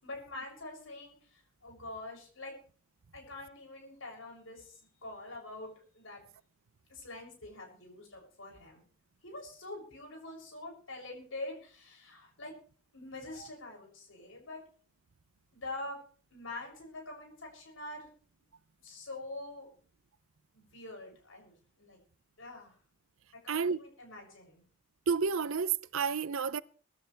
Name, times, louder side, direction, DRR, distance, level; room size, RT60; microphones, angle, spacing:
voice 1, 0.0-2.6 3.1-6.2 6.9-8.8 9.2-12.5 12.9-14.6 15.5-16.0 16.3-18.1 18.8-19.7 20.5-22.0 22.4-22.8 23.3-24.6, left 2 dB, 80° left, 7.4 m, -45 dB
voice 2, 23.5-23.8 25.1-26.6, right 5 dB, 80° right, 0.6 m, -30 dB
24.0 x 12.5 x 3.4 m
head